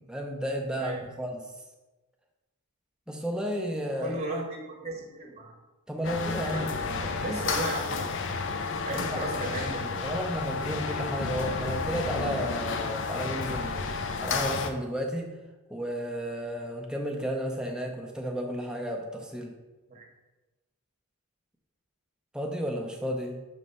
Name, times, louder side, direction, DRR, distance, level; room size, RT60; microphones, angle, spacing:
voice 1, 0.0-1.4 3.1-4.2 5.9-7.2 8.9-9.1 10.0-13.9 14.2-15.3 15.7-19.5 22.3-23.4, equal, 5° right, 1 dB, 0.6 m, -33 dB
voice 2, 4.0-5.5 6.5-6.7 7.2-8.1 8.8-10.1 19.9-20.1, right 2 dB, 30° right, -1 dB, 1.0 m, -35 dB
sound 1, 6.0-14.7, left 4 dB, 55° left, 0.5 m, -31 dB
6.3 x 3.3 x 5.3 m, 1.1 s
head